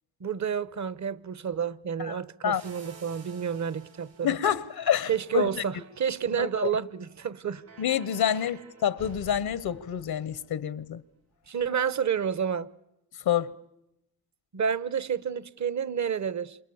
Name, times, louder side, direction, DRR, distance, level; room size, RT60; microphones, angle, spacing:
voice 1, 0.2-4.4 5.1-7.6 11.5-12.7 14.5-16.6, right 7 dB, 50° right, 0.9 m, -30 dB
sound 1, 2.5-11.0, right 4 dB, 90° right, 6.5 m, -52 dB
voice 2, 4.2-5.5 6.4-6.7 7.8-11.0 13.2-13.5, left 9 dB, 75° left, 0.9 m, -27 dB
28.0 x 27.5 x 7.1 m
cardioid pair, 55°, 37 cm